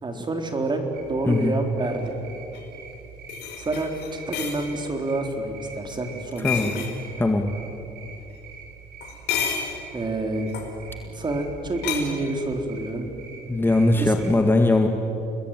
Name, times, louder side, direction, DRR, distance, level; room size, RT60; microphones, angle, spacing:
voice 1, 0.0-0.8 1.1-2.1 3.6-3.9 4.3-6.9 9.9-10.5 11.1-13.1 14.0-14.1, right 2 dB, 25° right, 4 dB, 4.1 m, -28 dB
sound 1, 0.9-14.3, right 5 dB, 85° right, 7.8 m, -44 dB
sound 2, 2.5-2.6 3.3-4.6 6.4-6.9 9.0-9.8 10.5-10.7 11.8-12.0, left 8 dB, 80° left, 5.2 m, -29 dB
voice 2, 6.4-6.7 7.2-7.5 13.5-14.9, left 2 dB, 15° left, 4 dB, 1.9 m, -20 dB
30.0 x 20.5 x 9.3 m, 2.9 s
cardioid pair, 110°, 17 cm